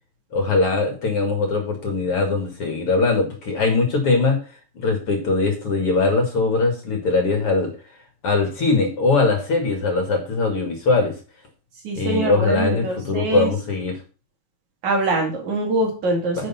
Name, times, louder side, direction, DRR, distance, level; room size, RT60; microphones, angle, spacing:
voice 1, 0.3-4.4 4.8-7.7 8.2-11.1 12.0-14.0 16.4-16.5, left 3 dB, 50° left, 4 dB, 2.5 m, -21 dB
voice 2, 11.8-13.5 14.8-16.5, right 2 dB, 60° right, 1 dB, 3.7 m, -23 dB
10.5 x 5.2 x 5.6 m, 0.35 s
omnidirectional pair, 3.7 m